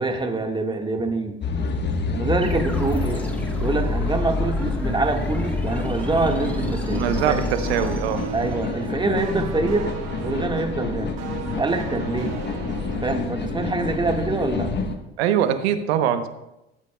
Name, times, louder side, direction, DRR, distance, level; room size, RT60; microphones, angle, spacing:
voice 1, 0.0-1.4 2.1-3.2 3.6-7.4 8.3-9.9 10.2-11.1 11.6-12.3 13.0-14.7, right 3 dB, 15° right, 3 dB, 1.6 m, -25 dB
sound 1, 1.4-14.9, left 3 dB, 35° left, 1.3 m, -29 dB
sound 2, 2.4-8.9, left 2 dB, 5° left, 1.7 m, -29 dB
sound 3, 6.0-13.1, right 8 dB, 50° right, 1.2 m, -36 dB
voice 2, 6.9-8.2 15.2-16.3, right 9 dB, 75° right, 10 dB, 0.9 m, -22 dB
18.0 x 8.1 x 2.3 m, 0.91 s
hypercardioid pair, 70°, 32 cm